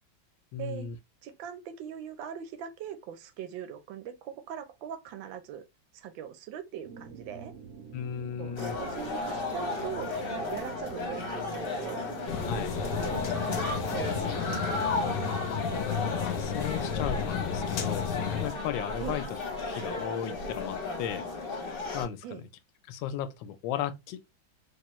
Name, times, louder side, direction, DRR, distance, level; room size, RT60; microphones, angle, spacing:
voice 1, 0.5-1.0 7.9-8.7 12.5-12.8 15.8-18.1 18.4-19.2 19.6-21.2 21.9-22.4 22.9-24.2, left 9 dB, 90° left, 1.3 m, -35 dB
voice 2, 1.2-5.6 5.9-7.5 8.4-12.0 12.9-14.8 19.0-19.2 22.2-22.4, right 8 dB, 85° right, 1.4 m, -41 dB
sound 1, 6.8-15.4, right 6 dB, 65° right, 0.7 m, -45 dB
sound 2, 8.6-22.1, left 3 dB, 40° left, 0.9 m, -34 dB
sound 3, 12.3-18.5, left 8 dB, 70° left, 0.9 m, -33 dB
3.5 x 3.0 x 3.0 m
omnidirectional pair, 2.0 m